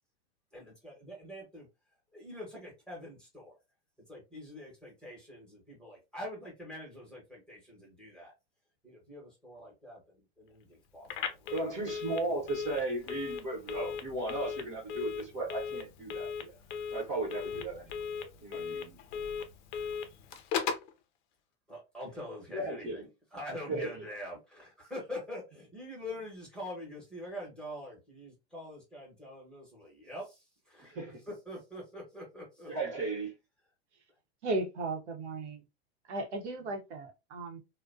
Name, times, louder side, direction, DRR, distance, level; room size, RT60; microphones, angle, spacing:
voice 1, 0.5-1.7 2.1-3.6 4.1-8.3 8.8-11.7 21.7-23.0 23.3-31.0 31.3-32.7, left 1 dB, 5° left, 1.0 m, -45 dB
Telephone, 11.0-20.9, left 6 dB, 45° left, 0.5 m, -38 dB
voice 2, 11.5-16.6 16.9-17.9 18.2-19.0 22.5-23.1 23.7-23.9 30.8-31.2 32.7-33.3, right 2 dB, 35° right, 1.1 m, -36 dB
voice 3, 34.4-35.6 36.0-37.6, right 2 dB, 85° right, 0.9 m, -36 dB
2.4 x 2.2 x 2.4 m
hypercardioid pair, 130°, 34 cm